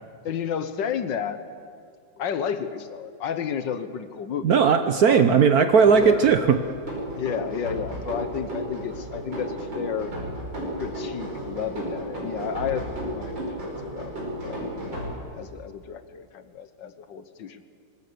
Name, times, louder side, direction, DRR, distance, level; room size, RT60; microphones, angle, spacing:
voice 1, 0.2-1.4 2.2-4.6 5.0-5.4 5.9-6.3 7.2-10.1 10.8-14.1 14.4-17.6, left 8 dB, 80° left, 11 dB, 1.8 m, -32 dB
voice 2, 4.4-6.6, right 6 dB, 60° right, 9 dB, 1.2 m, -17 dB
sound 1, 5.8-15.1, right 1 dB, 80° right, 6.3 m, -33 dB
24.5 x 21.0 x 6.8 m, 2.3 s
omnidirectional pair, 2.0 m